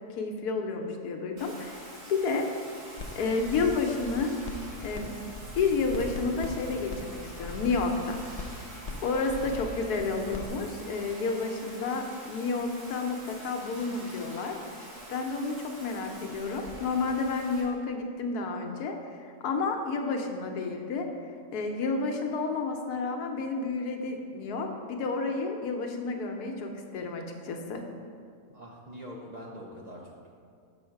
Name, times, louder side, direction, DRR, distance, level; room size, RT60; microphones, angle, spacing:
voice 1, 0.2-2.5 2.8-4.3 4.8-5.1 5.6-8.2 9.0-18.9 19.2-27.8, left 4 dB, 80° left, 4 dB, 1.3 m, -31 dB
Bathtub (filling or washing), 1.4-17.6, right 1 dB, 80° right, 2.2 m, -46 dB
sound 1, 3.0-3.1 3.4-5.0 5.3-10.5, left 2 dB, 65° left, 0.3 m, -40 dB
voice 2, 9.3-9.7 28.5-30.3, equal, 50° right, -4 dB, 0.5 m, -44 dB
6.3 x 4.8 x 5.8 m, 2.2 s
omnidirectional pair, 1.6 m